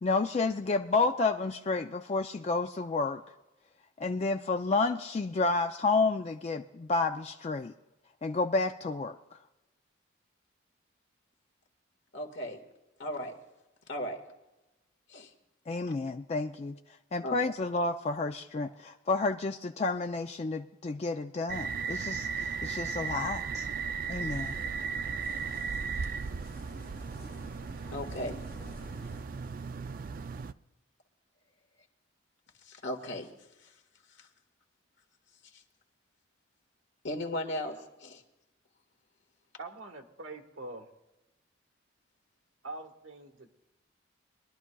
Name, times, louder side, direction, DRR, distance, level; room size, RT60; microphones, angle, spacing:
voice 1, 0.0-3.2 4.0-7.7 8.2-9.2 15.7-23.7 24.1-24.6, left 3 dB, 35° left, 6 dB, 0.3 m, -30 dB
voice 2, 12.1-12.6 13.0-13.3 13.9-14.2 15.1-15.3 17.2-17.3 27.9-28.4 32.6-33.3 33.6-33.7 34.2-34.3 35.5-35.6 37.0-38.2, left 1 dB, 65° left, 3 dB, 1.7 m, -36 dB
sound 1, 21.5-30.5, right 6 dB, 45° right, 0.3 m, -36 dB
sound 2, 24.2-29.2, left 1 dB, 50° left, 1.3 m, -50 dB
voice 3, 39.6-40.9 42.6-43.5, right 2 dB, 80° right, 4 dB, 1.4 m, -44 dB
23.0 x 12.0 x 2.3 m, 1.0 s
head